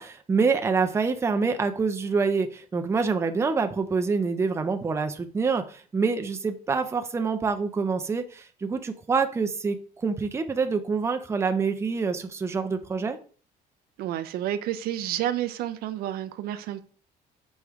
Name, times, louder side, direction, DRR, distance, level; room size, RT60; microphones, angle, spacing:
voice 1, 0.0-13.2, right 4 dB, 15° right, 0.4 m, -26 dB
voice 2, 14.0-16.8, right 12 dB, 75° right, 0.4 m, -30 dB
4.9 x 3.1 x 3.5 m
cardioid pair, 130°, 16 cm